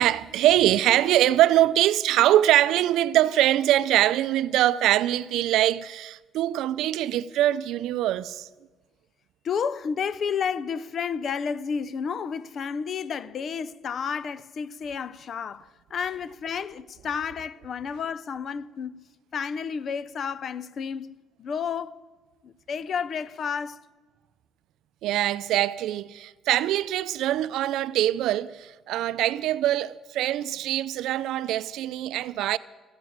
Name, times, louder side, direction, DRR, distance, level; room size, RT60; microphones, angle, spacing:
voice 1, 0.0-8.5 25.0-32.6, right 13 dB, 80° right, 0.4 m, -23 dB
voice 2, 9.4-19.0 19.3-22.0 22.4-23.8, left 6 dB, 45° left, 0.5 m, -31 dB
14.5 x 9.4 x 9.3 m
cardioid pair, 120°, 0 cm